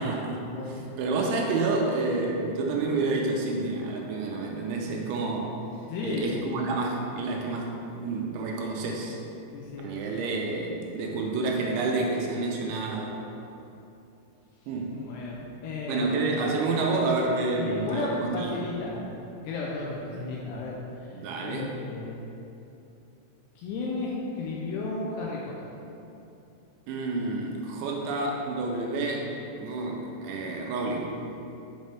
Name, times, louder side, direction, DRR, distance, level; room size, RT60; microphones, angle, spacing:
voice 1, 0.0-5.6 6.0-9.2 9.8-13.2 14.7-15.0 15.9-18.6 21.1-21.8 26.9-29.3 29.6-31.2, right 3 dB, 85° right, 0 dB, 2.8 m, -29 dB
voice 2, 5.9-6.4 9.5-9.9 14.9-16.1 17.6-21.2 21.4-22.2 23.6-25.5, left 3 dB, 90° left, -3 dB, 2.4 m, -34 dB
7.3 x 5.3 x 3.4 m, 2.8 s
omnidirectional pair, 5.6 m